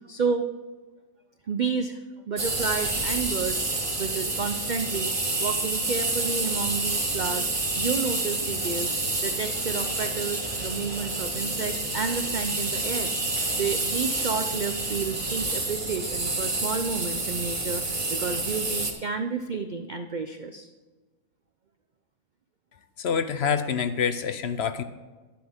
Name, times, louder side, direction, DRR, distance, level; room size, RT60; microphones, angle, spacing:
voice 1, 0.1-0.5 1.5-2.0 2.3-3.6 4.0-5.1 5.4-9.0 9.2-13.1 13.5-20.7, right 5 dB, 70° right, 7 dB, 0.4 m, -31 dB
sound 1, 2.4-18.9, right 2 dB, 25° right, 1.1 m, -28 dB
voice 2, 23.0-24.8, left 7 dB, 60° left, 10 dB, 0.7 m, -26 dB
11.5 x 10.5 x 3.6 m, 1.3 s
omnidirectional pair, 1.6 m